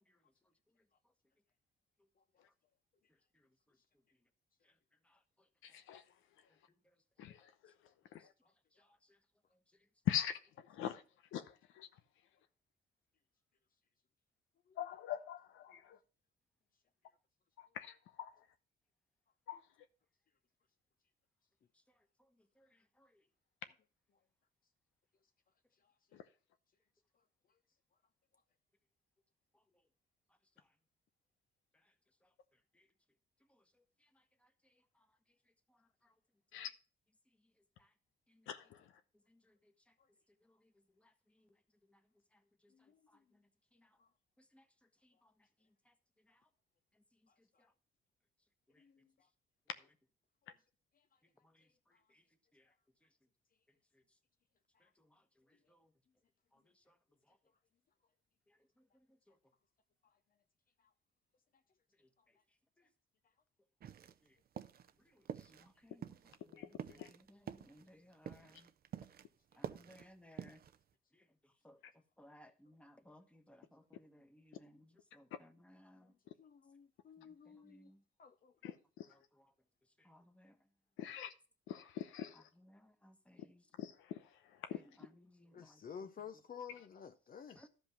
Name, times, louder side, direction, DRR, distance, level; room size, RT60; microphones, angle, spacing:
voice 1, 5.6-6.0 7.2-7.4 8.1-8.3 10.1-10.4 10.7-11.0 11.3-11.4 11.8-11.9 14.8-15.8 17.7-18.3 19.5-19.6 36.5-36.7 38.5-38.8 66.5-66.7 67.0-67.1 78.6-79.1 81.0-81.3 81.7-82.4 83.8-84.2 84.7-84.8, left 11 dB, 85° left, 0.8 m, -41 dB
voice 2, 8.7-9.2 22.2-22.3 22.6-23.2 29.5-29.6 30.6-30.7 31.8-31.9 32.7-32.9 33.5-33.6 34.0-35.1 35.7-36.1 36.5-36.7 37.8-37.9 38.3-38.5 39.3-39.9 40.4-40.7 41.0-41.5 41.9-42.0 42.3-44.0 44.4-44.7 45.0-45.3 45.8-45.9 46.3-46.4 47.4-47.7 48.7-49.1 51.4-52.2 52.5-52.7 53.0-53.1 53.9-54.0 54.8-55.9 56.5-57.0 57.3-57.4 58.5-59.4 62.0-62.1 62.8-62.9 64.2-64.4 65.0-68.7 69.5-70.6 71.1-71.8 72.2-76.1 77.2-78.0 79.1-79.5 80.0-80.6 82.3-83.7 84.7-86.1 87.5-87.7, left 1 dB, 5° left, 1.3 m, -65 dB
voice 3, 42.7-43.2 44.0-44.1 47.3-47.7 48.8-49.3 50.9-51.0 51.9-52.0 54.7-54.9 60.0-60.2 64.6-64.7 76.0-77.9 78.2-78.8 85.5-87.7, left 7 dB, 45° left, 0.8 m, -54 dB
sound 1, 63.8-64.3 64.6-64.9 65.3-65.7 66.0-69.3 69.5-70.8, right 9 dB, 50° right, 0.6 m, -48 dB
12.0 x 5.3 x 5.8 m
cardioid pair, 90°, 20 cm